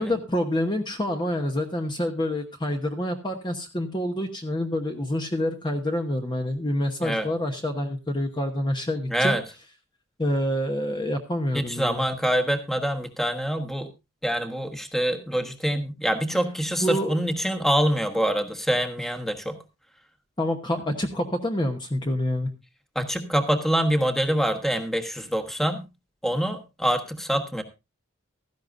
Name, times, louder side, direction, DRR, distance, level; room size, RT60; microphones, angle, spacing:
voice 1, 0.0-9.3 10.2-12.0 16.8-17.2 20.4-22.5, left 1 dB, 20° left, 4 dB, 1.0 m, -27 dB
voice 2, 9.1-9.4 11.5-13.9 14.2-19.6 22.9-25.8 26.2-27.6, equal, ahead, 7 dB, 1.2 m, -25 dB
16.0 x 13.5 x 2.5 m, 0.26 s
head